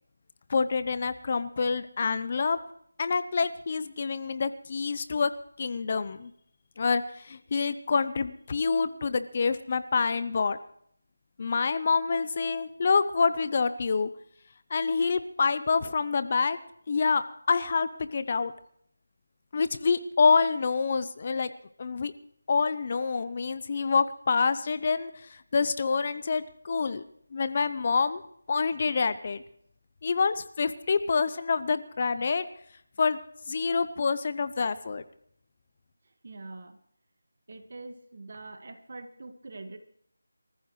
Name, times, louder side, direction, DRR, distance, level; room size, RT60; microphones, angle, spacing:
voice 1, 0.5-2.6 3.0-5.3 5.6-6.3 6.8-10.6 11.4-14.1 14.7-16.6 16.9-18.5 19.5-21.5 21.8-22.1 22.5-25.1 25.5-27.0 27.3-28.2 28.5-29.4 30.0-32.5 33.0-33.2 33.5-35.0, left 5 dB, 35° left, 13 dB, 0.6 m, -27 dB
voice 2, 36.2-36.8 37.5-39.8, right 2 dB, 50° right, 7 dB, 1.8 m, -44 dB
24.0 x 14.5 x 3.2 m, 0.68 s
figure-of-eight pair, 170°, 0 cm